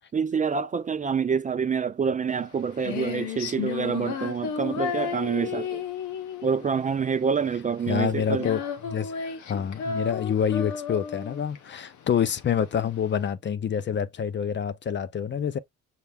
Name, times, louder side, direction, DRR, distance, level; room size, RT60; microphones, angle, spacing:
voice 1, 0.1-5.8 6.4-8.5, right 6 dB, 25° right, 0.4 m, -27 dB
Female singing, 2.3-13.3, left 7 dB, 75° left, 0.9 m, -33 dB
voice 2, 7.9-8.6 8.9-15.6, left 8 dB, 40° left, 0.5 m, -27 dB
5.8 x 2.0 x 3.4 m
cardioid pair, 90°, 30 cm